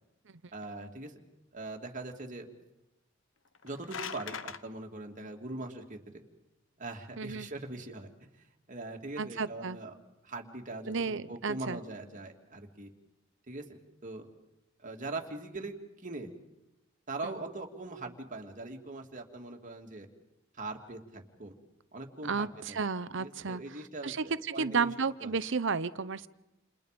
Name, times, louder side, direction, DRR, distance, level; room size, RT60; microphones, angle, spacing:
voice 1, 0.5-1.1 1.5-2.5 3.6-6.2 6.8-8.1 8.4-9.9 10.2-12.9 13.5-14.3 14.8-16.3 17.1-20.1 20.5-21.6 21.9-22.8 23.2-24.9 25.2-25.4, right 2 dB, 40° right, 3 dB, 3.0 m, -41 dB
sound 1, 3.5-4.6, left 7 dB, 70° left, 1.3 m, -40 dB
voice 2, 7.2-7.5 9.2-9.8 10.9-11.8 22.2-23.6 24.0-26.3, right 5 dB, 65° right, 15 dB, 0.8 m, -32 dB
30.0 x 29.5 x 5.3 m, 0.91 s
head